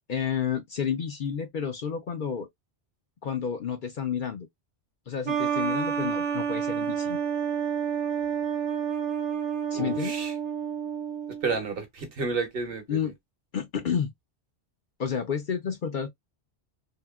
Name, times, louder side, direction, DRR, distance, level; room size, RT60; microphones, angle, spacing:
voice 1, 0.1-2.5 3.2-4.5 5.1-7.2 9.7-10.1 12.9-13.1 13.5-14.1 15.0-16.1, left 7 dB, 55° left, 0.6 m, -30 dB
sound 1, 5.3-11.6, right 7 dB, 35° right, 0.5 m, -29 dB
voice 2, 9.7-10.3 11.4-13.1, right 4 dB, 55° right, 1.0 m, -31 dB
2.8 x 2.7 x 2.2 m
omnidirectional pair, 1.2 m